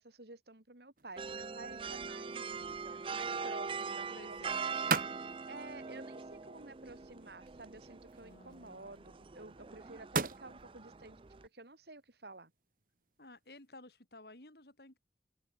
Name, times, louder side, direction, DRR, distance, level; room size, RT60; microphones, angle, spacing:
voice 1, 0.0-5.1 5.5-12.5, right 2 dB, 65° right, 2.9 m, -52 dB
sound 1, 1.0-13.7, right 4 dB, 50° right, 1.6 m, -44 dB
sound 2, 1.2-11.5, right 5 dB, 30° right, 0.5 m, -42 dB
voice 2, 3.9-5.4 8.2-9.6 13.2-15.0, left 2 dB, 65° left, 3.6 m, -56 dB
open air
head